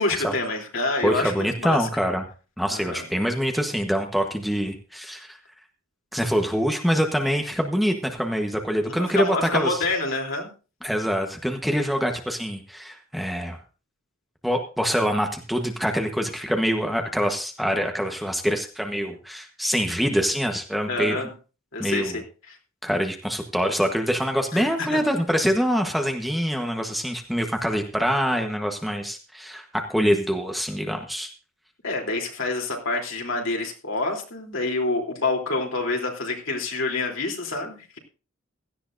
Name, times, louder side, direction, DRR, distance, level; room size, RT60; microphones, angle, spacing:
voice 1, 0.0-1.9 2.7-3.0 8.8-10.5 20.9-21.3 21.7-22.6 24.5-25.1 31.8-38.0, left 2 dB, 70° left, 1 dB, 3.3 m, -27 dB
voice 2, 1.0-2.2 2.6-5.4 6.1-9.8 10.8-13.6 14.4-21.2 21.8-22.2 22.8-31.3, equal, ahead, 3 dB, 1.2 m, -25 dB
16.5 x 13.0 x 2.6 m, 0.34 s
head